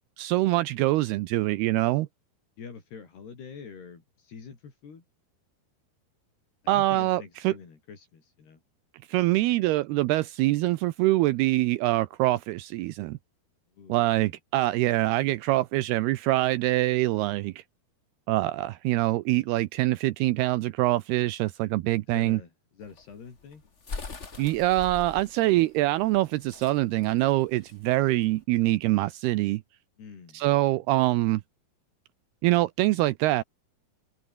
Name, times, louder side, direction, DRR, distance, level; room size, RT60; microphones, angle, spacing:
voice 1, 0.2-2.1 6.7-7.5 9.1-13.2 13.9-17.6 18.3-22.4 24.4-29.6 30.3-31.4 32.4-33.4, right 17 dB, 80° right, 2.7 m, -24 dB
voice 2, 2.6-5.0 6.6-8.6 13.7-14.1 22.1-23.6 30.0-30.5 30.7-30.8, left 6 dB, 75° left, 7.0 m, -46 dB
sound 1, 22.8-28.4, left 4 dB, 30° left, 1.3 m, -42 dB
open air
omnidirectional pair, 4.7 m